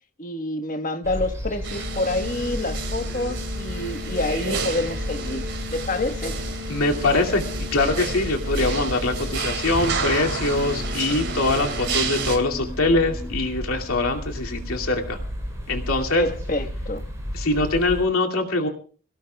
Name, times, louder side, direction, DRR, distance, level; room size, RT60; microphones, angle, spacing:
voice 1, 0.2-5.4 5.7-6.4 16.2-17.0, left 2 dB, 35° left, 1.3 m, -27 dB
sound 1, 1.0-18.0, equal, 15° right, 5.6 m, -33 dB
sound 2, 1.6-12.4, right 3 dB, 50° right, 3.6 m, -31 dB
voice 2, 6.7-15.2 15.7-16.3 17.3-18.7, left 2 dB, 75° left, 2.5 m, -23 dB
sound 3, 9.0-14.8, left 1 dB, 10° left, 2.0 m, -42 dB
27.0 x 17.5 x 2.3 m
head